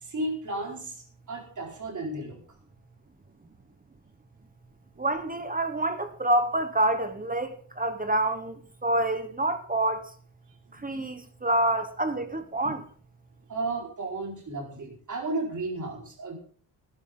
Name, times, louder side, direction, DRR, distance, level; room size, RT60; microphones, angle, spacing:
voice 1, 0.0-2.4 10.7-10.8 12.6-12.7 13.5-16.4, right 2 dB, 40° right, 4.6 m, -34 dB
voice 2, 5.0-10.1 10.7-12.8, right 1 dB, 20° right, 1.1 m, -27 dB
17.5 x 11.5 x 3.8 m
wide cardioid pair, 170°, 47 cm